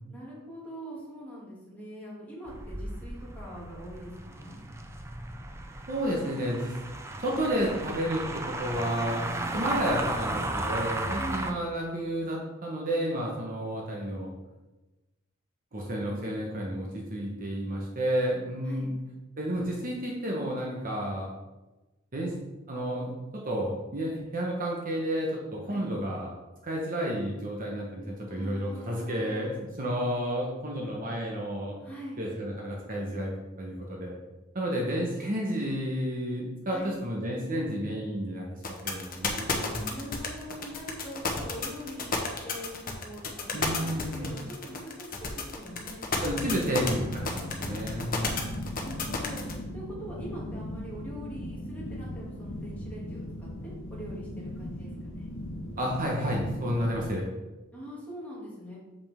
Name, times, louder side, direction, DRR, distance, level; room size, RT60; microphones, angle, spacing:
voice 1, 0.1-4.6 11.1-11.4 16.1-16.3 18.6-18.9 25.7-25.9 28.3-29.5 31.8-32.2 36.7-37.0 39.7-46.2 48.3-48.4 48.7-49.4 49.7-55.3 57.7-58.8, equal, 10° left, -7 dB, 2.4 m, -43 dB
sound 1, 2.5-11.5, right 2 dB, 15° right, 0.5 m, -35 dB
voice 2, 5.9-6.7 7.2-9.2 9.5-14.3 15.7-19.0 19.4-21.3 22.1-22.3 22.7-26.3 26.6-31.8 32.2-33.3 33.6-34.1 34.5-38.5 38.8-39.8 43.5-44.3 46.2-47.0 47.3-48.5 55.8-57.3, equal, 40° right, -2 dB, 1.2 m, -31 dB
sound 2, 38.6-49.5, left 4 dB, 45° left, 1.0 m, -31 dB
sound 3, 46.1-57.1, left 1 dB, 65° left, 0.9 m, -39 dB
6.9 x 5.6 x 3.6 m, 1.1 s
head